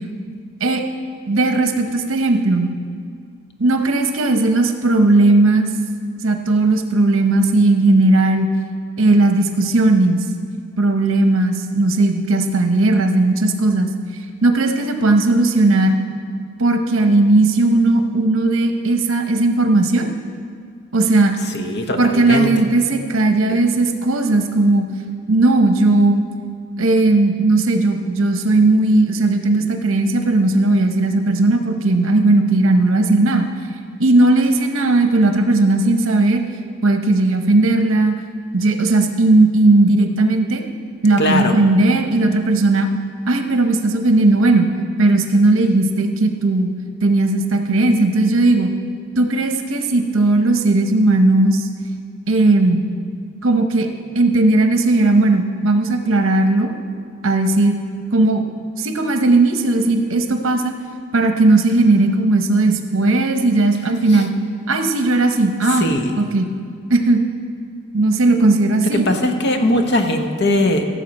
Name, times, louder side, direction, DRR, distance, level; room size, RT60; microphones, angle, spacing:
voice 1, 1.3-2.7 3.6-5.7 6.2-8.5 9.0-10.2 10.8-13.9 14.4-16.0 16.6-20.1 20.9-21.3 22.0-24.8 25.3-26.2 26.8-33.5 34.0-36.4 36.8-38.2 38.5-40.6 41.0-42.9 43.3-44.7 45.0-46.7 47.0-48.7 49.2-51.7 52.3-52.8 53.4-53.9 54.1-56.7 57.2-57.7 58.1-58.4 58.8-60.8 61.1-64.3 64.7-65.8 66.2-66.5 66.9-67.2 67.9-69.1, right 2 dB, 65° right, 5 dB, 0.9 m, -16 dB
voice 2, 21.4-22.5 23.5-23.6 41.2-41.6 64.1-64.3 65.7-66.2 68.8-70.9, left 1 dB, 50° left, 5 dB, 0.9 m, -20 dB
15.5 x 7.2 x 4.2 m, 2.2 s
head